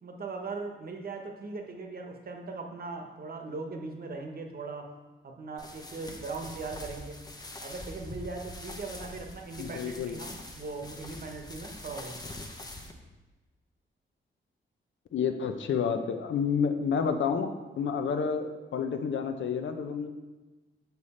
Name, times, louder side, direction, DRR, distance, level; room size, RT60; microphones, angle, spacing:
voice 1, 0.0-4.9 5.2-7.2 7.6-12.4 17.8-17.9, right 3 dB, 45° right, 3 dB, 1.0 m, -39 dB
sound 1, 5.6-12.9, left 1 dB, 20° left, 0.7 m, -44 dB
voice 2, 9.6-10.1 15.1-20.1, left 6 dB, 70° left, 7 dB, 0.7 m, -29 dB
6.9 x 6.4 x 4.2 m, 1.2 s
wide cardioid pair, 140°, 21 cm